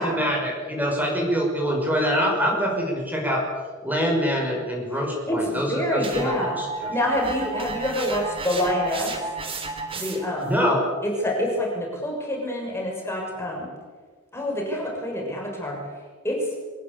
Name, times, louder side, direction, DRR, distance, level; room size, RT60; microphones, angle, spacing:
voice 1, 0.0-3.4 3.8-6.3 6.6-6.9 10.4-10.8, equal, 10° right, 0 dB, 6.0 m, -24 dB
voice 2, 5.3-6.6 6.9-9.1 9.9-10.5 11.0-13.7 14.3-15.8 16.2-16.5, left 1 dB, 10° left, -1 dB, 6.2 m, -26 dB
sound 1, 6.0-10.4, right 3 dB, 25° right, 3.5 m, -33 dB
24.0 x 20.5 x 8.4 m, 1.4 s
head